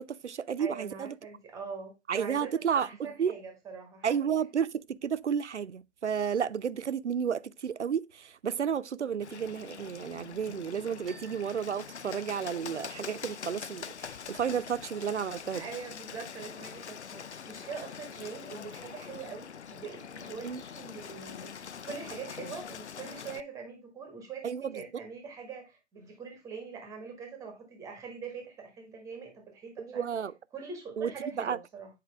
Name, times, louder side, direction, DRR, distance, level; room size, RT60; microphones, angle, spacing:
voice 1, 0.0-1.1 2.1-3.3 4.0-15.6 20.4-20.6 24.4-24.7 29.8-30.3 31.0-31.1 31.4-31.6, right 7 dB, 90° right, 0.5 m, -32 dB
voice 2, 0.6-4.1 15.5-30.0 30.5-31.9, right 5 dB, 10° right, 1.3 m, -43 dB
Bird, 9.2-23.4, left 7 dB, 75° left, 0.6 m, -44 dB
sound 1, 11.1-13.0, right 6 dB, 55° right, 1.0 m, -57 dB
7.6 x 4.9 x 3.3 m
figure-of-eight pair, 135°, 34 cm